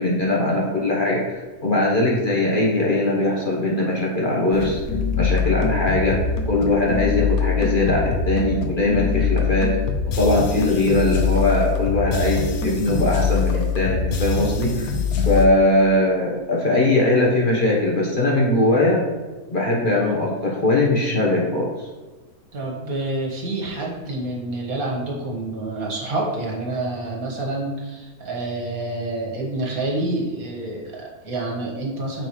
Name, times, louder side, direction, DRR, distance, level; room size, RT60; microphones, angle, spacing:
voice 1, 0.0-4.8 5.2-6.2 6.5-9.7 10.2-14.9 15.2-19.0 19.5-21.9, left 2 dB, 35° left, -3 dB, 1.2 m, -20 dB
sound 1, 4.5-15.5, left 5 dB, 75° left, 1.2 m, -23 dB
voice 2, 22.5-32.3, right 2 dB, 70° right, -2 dB, 1.9 m, -28 dB
9.0 x 4.3 x 3.1 m, 1.3 s
omnidirectional pair, 1.6 m